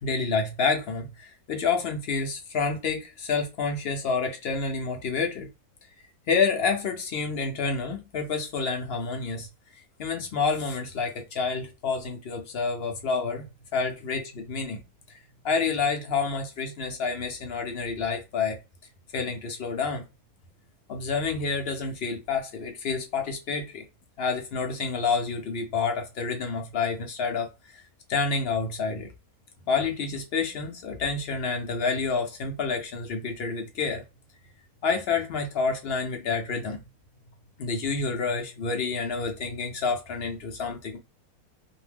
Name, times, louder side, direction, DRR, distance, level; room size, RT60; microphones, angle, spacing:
voice 1, 0.0-5.5 6.3-9.5 10.0-14.8 15.4-18.6 19.1-20.0 20.9-23.8 24.2-27.5 28.1-29.1 29.7-34.0 34.8-36.8 37.6-41.0, left 4 dB, 60° left, 0.6 m, -28 dB
2.6 x 2.1 x 3.3 m
omnidirectional pair, 1.6 m